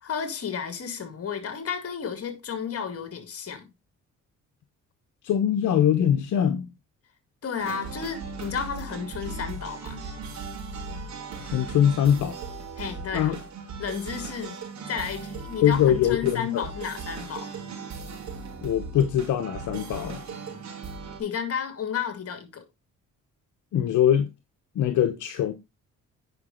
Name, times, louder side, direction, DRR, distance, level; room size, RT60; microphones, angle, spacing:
voice 1, 0.0-3.7 7.4-10.0 12.8-13.3 13.8-14.6 14.9-17.5 21.2-22.6, left 7 dB, 50° left, 2.2 m, -32 dB
voice 2, 5.2-6.7 11.4-12.4 13.1-13.4 15.6-16.6 18.6-20.2 23.7-24.3 24.7-25.5, left 10 dB, 75° left, 1.1 m, -22 dB
sound 1, 7.6-21.2, right 4 dB, 65° right, 3.6 m, -38 dB
9.5 x 5.4 x 3.9 m
cardioid pair, 90°, 30 cm